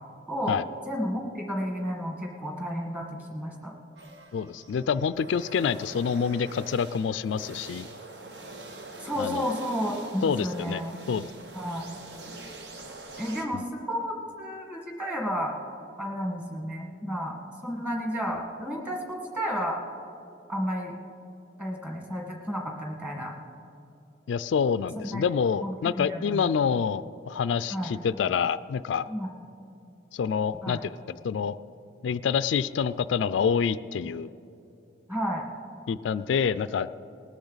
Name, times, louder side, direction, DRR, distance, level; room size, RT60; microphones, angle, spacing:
voice 1, 0.3-0.6 0.9-3.7 9.0-11.0 11.5-11.9 13.2-15.5 16.0-17.4 17.6-19.8 20.5-20.9 21.6-23.3 25.0-25.2 25.6-26.4 27.7-27.9 29.1-29.3 30.6-30.8 35.1-35.4, equal, 10° right, 1 dB, 1.5 m, -32 dB
sound 1, 4.0-13.5, right 2 dB, 65° right, 1.1 m, -44 dB
voice 2, 4.3-7.9 9.2-9.5 10.2-10.8 11.1-11.3 13.5-13.6 24.3-29.1 30.1-31.6 32.0-34.3 35.9-36.9, left 6 dB, 80° left, 15 dB, 0.3 m, -27 dB
18.5 x 13.0 x 4.0 m, 2.7 s
head